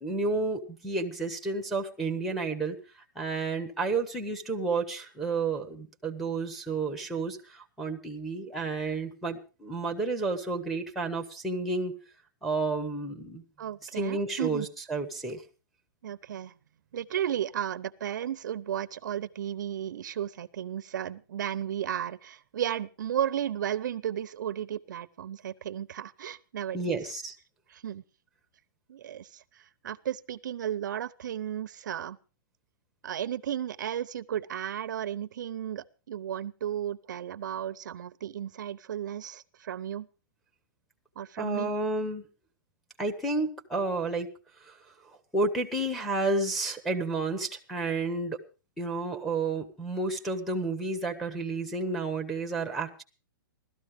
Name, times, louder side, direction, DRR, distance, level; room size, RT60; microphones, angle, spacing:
voice 1, 0.0-2.8 3.2-11.9 12.4-13.4 13.9-15.4 26.7-27.3 41.4-42.2 43.0-44.3 44.7-44.8 45.3-48.4 48.8-53.0, right 3 dB, ahead, 3 dB, 1.0 m, -31 dB
voice 2, 13.6-14.7 16.0-16.5 16.9-27.0 27.7-28.0 28.9-32.2 33.0-40.1 41.2-41.7, right 10 dB, 60° right, 14 dB, 0.7 m, -34 dB
16.5 x 13.0 x 4.9 m, 0.34 s
hypercardioid pair, 175°, 11 cm